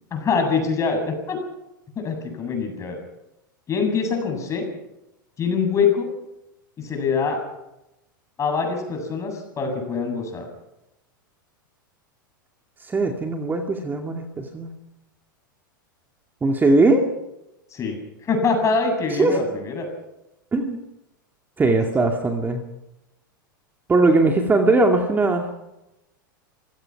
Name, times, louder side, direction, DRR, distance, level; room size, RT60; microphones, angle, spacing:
voice 1, 0.1-1.4 2.0-3.0 3.7-4.7 5.4-6.1 6.8-7.4 8.4-10.4 17.7-18.0 18.2-19.9, left 5 dB, 25° left, 4 dB, 7.8 m, -24 dB
voice 2, 12.8-14.7 16.4-17.1 19.1-19.4 20.5-20.8 21.6-22.6 23.9-25.5, right 2 dB, 15° right, 4 dB, 2.3 m, -20 dB
27.0 x 16.5 x 6.1 m, 0.90 s
hypercardioid pair, 95°, 11 cm